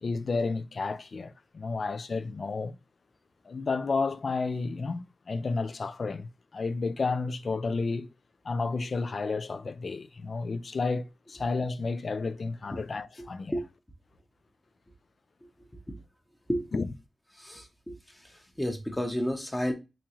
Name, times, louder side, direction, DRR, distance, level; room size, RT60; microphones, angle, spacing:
voice 1, 0.0-2.8 3.5-8.1 8.4-13.6 16.7-16.9, left 4 dB, 55° left, 0.3 m, -31 dB
voice 2, 17.4-17.9 18.6-19.7, equal, 15° left, 0.8 m, -30 dB
3.7 x 2.9 x 2.9 m
wide cardioid pair, 80°, 0 cm